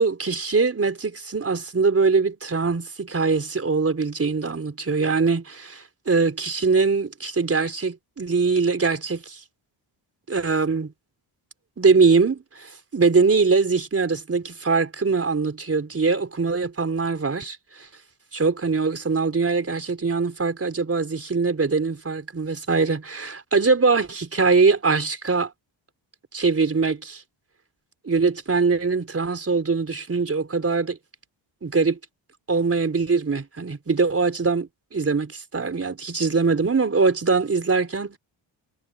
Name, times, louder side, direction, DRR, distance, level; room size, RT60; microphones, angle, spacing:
voice 1, 0.0-9.4 10.3-10.9 11.8-17.9 18.3-25.5 26.3-27.2 28.1-31.0 31.6-32.0 32.5-38.2, right 4 dB, 30° right, 4.0 m, -22 dB
cardioid pair, 80°, 47 cm